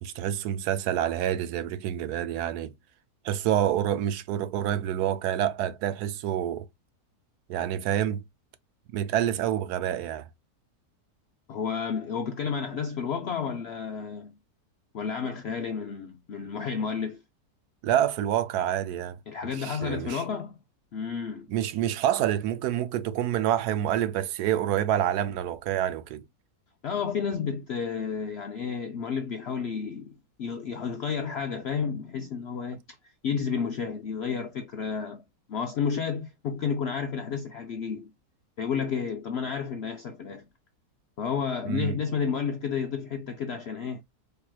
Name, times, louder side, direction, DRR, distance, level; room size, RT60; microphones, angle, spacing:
voice 1, 0.0-2.7 3.2-6.7 7.5-8.2 8.9-10.3 17.8-19.2 19.5-20.2 21.5-26.2 41.7-42.0, right 11 dB, 85° right, 1.1 m, -27 dB
voice 2, 11.5-14.4 14.9-17.2 19.3-20.6 20.9-21.5 26.8-33.0 33.2-35.2 35.5-38.1 38.6-40.5 41.2-44.0, left 6 dB, 70° left, 0.6 m, -31 dB
4.5 x 2.8 x 2.3 m
omnidirectional pair, 1.7 m